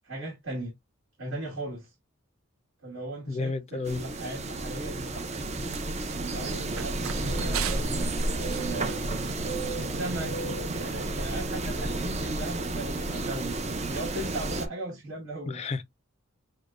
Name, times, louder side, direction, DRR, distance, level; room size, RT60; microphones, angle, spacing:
voice 1, 0.0-0.7 1.2-1.9 2.8-5.8 6.1-8.1 8.5-9.1 9.7-13.6 13.9-15.6, right 1 dB, 65° right, 1.5 m, -37 dB
voice 2, 3.3-4.0 15.5-15.8, left 4 dB, 30° left, 0.4 m, -32 dB
sound 1, 3.9-14.7, right 2 dB, 30° right, 0.6 m, -31 dB
Run, 5.1-10.2, right 9 dB, 85° right, 0.5 m, -40 dB
6.4 x 2.2 x 2.4 m
head